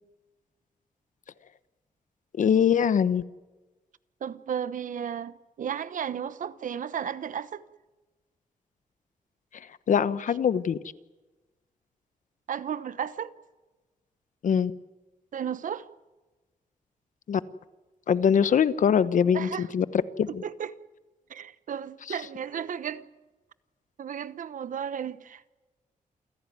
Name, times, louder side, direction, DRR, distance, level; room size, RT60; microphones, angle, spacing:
voice 1, 2.3-3.2 9.9-10.8 14.4-14.7 17.3-17.4 18.1-19.8 20.2-20.4, left 7 dB, 65° left, 1.0 m, -22 dB
voice 2, 4.2-7.6 12.5-13.3 15.3-15.9 19.3-19.7 20.4-20.8 21.3-23.1 24.0-25.5, right 8 dB, 65° right, 1.1 m, -34 dB
28.5 x 16.0 x 9.4 m
cardioid pair, 110°, 14 cm